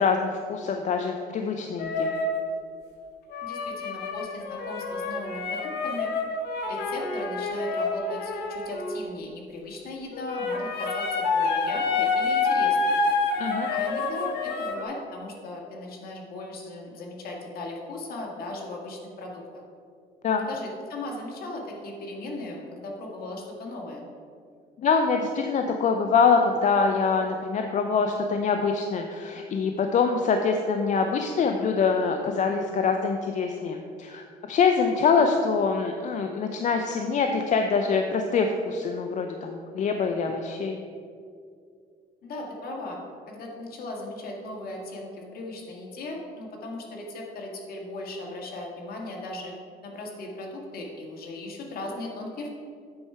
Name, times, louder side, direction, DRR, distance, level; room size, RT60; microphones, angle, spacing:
voice 1, 0.0-2.1 13.4-13.7 20.2-20.5 24.8-40.8, left 5 dB, 45° left, 5 dB, 0.6 m, -24 dB
sound 1, 1.8-2.4 3.3-9.0 10.1-14.8, left 4 dB, 80° left, 1.1 m, -28 dB
voice 2, 3.4-6.1 6.7-13.0 13.7-19.6 20.5-24.1 42.2-43.0 43.3-49.5 49.8-52.5, left 2 dB, 60° left, 0 dB, 1.8 m, -37 dB
8.6 x 4.7 x 5.6 m, 2.3 s
cardioid pair, 110°, 17 cm